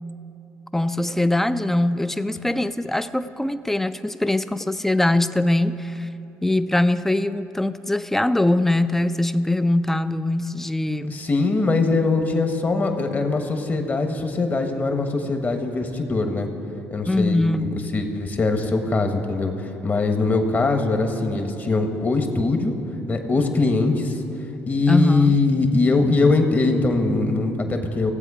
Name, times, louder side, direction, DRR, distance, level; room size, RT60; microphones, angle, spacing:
voice 1, 0.7-6.1 6.4-11.2 17.1-17.7 24.9-25.4, left 1 dB, 5° left, 13 dB, 0.4 m, -22 dB
voice 2, 11.1-16.5 16.9-17.4 17.9-22.8 23.1-24.2 24.7-28.1, left 3 dB, 35° left, 5 dB, 1.2 m, -21 dB
16.0 x 7.7 x 4.9 m, 2.9 s
supercardioid pair, 85°, 6 cm